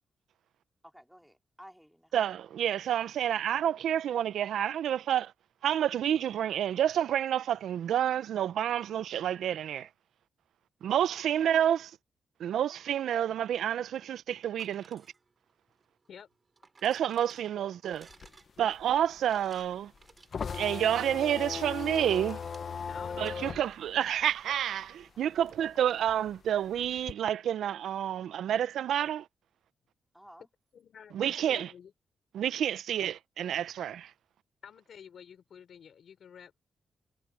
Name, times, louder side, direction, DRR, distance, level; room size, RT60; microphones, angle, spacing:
voice 1, 0.8-2.1 11.0-11.2 25.1-25.3 30.1-30.5, equal, ahead, 3.1 m, -54 dB
voice 2, 2.1-5.3 5.6-9.9 10.8-11.9 12.4-15.0 16.8-18.1 18.6-19.9 20.5-22.4 23.2-29.3 31.1-31.7 32.4-34.1, right 10 dB, 85° right, 0.5 m, -29 dB
sound 1, 14.4-23.4, right 4 dB, 30° right, 6.1 m, -59 dB
sound 2, 17.9-25.0 25.4-27.1, left 6 dB, 45° left, 0.7 m, -38 dB
voice 3, 22.9-23.5 30.7-31.9 34.6-36.6, left 8 dB, 65° left, 5.3 m, -50 dB
cardioid pair, 125°, 0 cm